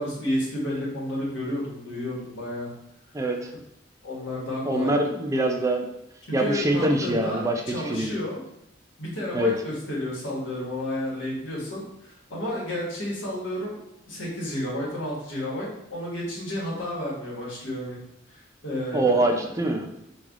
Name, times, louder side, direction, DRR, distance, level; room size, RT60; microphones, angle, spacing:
voice 1, 0.0-2.7 4.0-4.9 6.3-8.4 9.0-13.8 14.1-18.0 18.3-19.3, left 1 dB, 80° left, -5 dB, 1.3 m, -31 dB
voice 2, 3.1-3.5 4.6-5.9 6.3-8.1 9.3-9.5 18.9-19.9, right 1 dB, 15° right, 3 dB, 0.4 m, -24 dB
3.3 x 2.3 x 3.5 m, 0.82 s
head